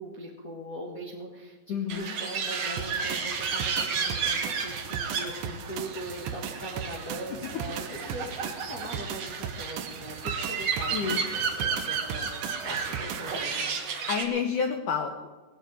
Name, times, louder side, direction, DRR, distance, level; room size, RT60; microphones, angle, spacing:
voice 1, 0.0-13.8, right 1 dB, 50° left, -3 dB, 1.0 m, -41 dB
voice 2, 1.7-2.1 10.9-11.3 14.1-15.3, left 6 dB, 65° left, 4 dB, 2.1 m, -29 dB
sound 1, 1.9-14.2, right 5 dB, 50° right, 2.0 m, -32 dB
sound 2, 2.8-13.4, right 8 dB, 80° right, 1.8 m, -38 dB
19.0 x 7.2 x 9.3 m, 1.2 s
omnidirectional pair, 4.7 m